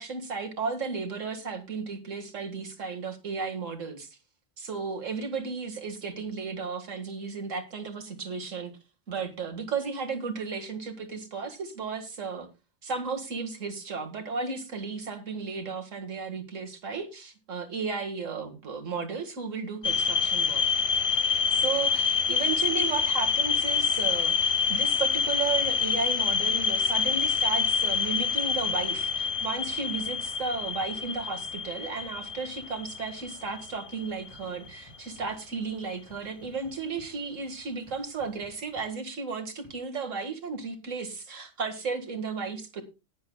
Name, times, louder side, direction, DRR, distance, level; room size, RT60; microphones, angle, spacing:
voice 1, 0.0-4.1 4.6-8.7 9.1-12.5 12.8-20.6 21.5-42.8, right 5 dB, 80° right, 5 dB, 2.2 m, -34 dB
sound 1, 19.8-34.8, left 6 dB, 50° left, 0.4 m, -27 dB
sound 2, 34.3-35.4 36.1-37.2 37.9-39.0 39.6-39.7, right 1 dB, 20° left, 6.8 m, -54 dB
19.0 x 8.0 x 2.3 m, 0.28 s
omnidirectional pair, 1.3 m